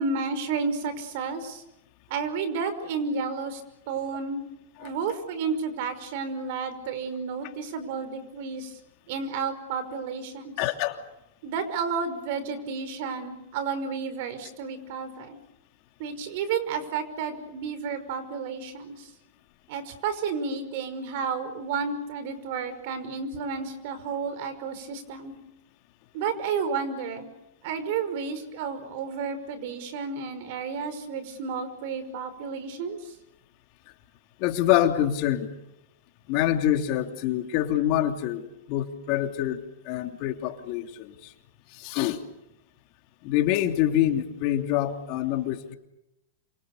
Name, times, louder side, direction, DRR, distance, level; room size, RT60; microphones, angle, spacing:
voice 1, 0.0-1.6 2.1-3.6 3.9-4.4 4.8-8.8 9.1-10.6 11.4-15.4 16.0-19.1 19.7-25.3 26.1-27.3 27.6-33.1, right 5 dB, 60° right, 12 dB, 5.6 m, -31 dB
voice 2, 10.6-11.0 34.4-35.5 36.3-39.6 39.8-41.3 41.7-42.2 43.2-45.7, left 12 dB, 50° left, 5 dB, 3.0 m, -26 dB
28.5 x 26.0 x 6.9 m, 0.87 s
hypercardioid pair, 115°, 0 cm